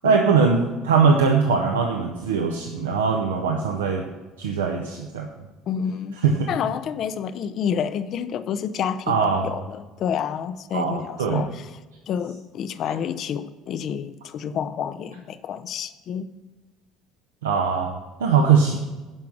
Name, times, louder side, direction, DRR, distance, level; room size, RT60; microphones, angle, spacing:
voice 1, 0.0-4.0 4.4-5.3 6.2-6.5 9.1-9.5 10.7-11.4 17.4-18.8, right 5 dB, 70° right, 2 dB, 0.8 m, -21 dB
voice 2, 5.7-6.2 6.5-11.7 12.1-16.3, left 8 dB, 45° left, 13 dB, 0.6 m, -29 dB
11.0 x 5.8 x 6.2 m, 1.2 s
figure-of-eight pair, 60°, 0 cm